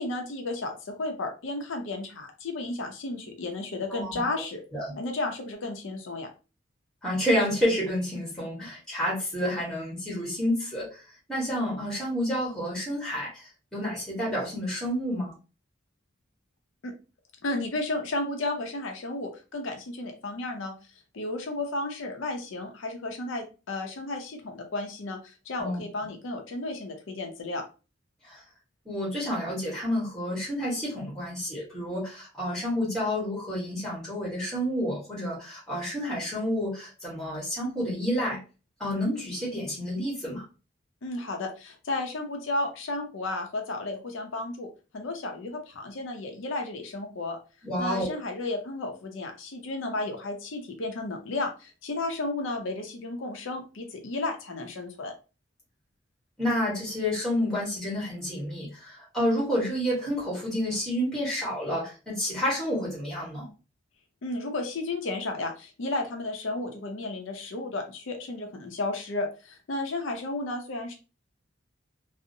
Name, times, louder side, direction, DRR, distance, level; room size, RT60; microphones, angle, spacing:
voice 1, 0.0-4.6 5.0-6.3 16.8-16.9 17.4-20.7 21.1-27.6 41.0-47.4 47.8-55.1 64.2-70.9, left 2 dB, 75° left, 4 dB, 0.5 m, -33 dB
voice 2, 7.0-11.0 11.3-15.3 25.6-25.8 28.2-28.4 28.8-38.4 38.8-40.4 47.6-48.1 56.4-63.5, equal, 5° left, -5 dB, 1.1 m, -29 dB
2.6 x 2.0 x 2.6 m, 0.32 s
head